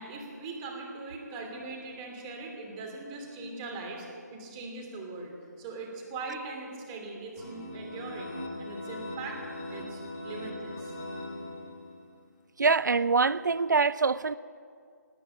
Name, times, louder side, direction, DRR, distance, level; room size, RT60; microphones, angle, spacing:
voice 1, 0.0-9.4 9.7-10.9, right 3 dB, 20° right, 0 dB, 2.9 m, -41 dB
sound 1, 7.4-12.1, left 1 dB, 40° left, 4.0 m, -40 dB
voice 2, 12.6-14.3, right 4 dB, 90° right, 18 dB, 0.4 m, -24 dB
19.0 x 8.5 x 8.9 m, 2.3 s
figure-of-eight pair, 155°, 10 cm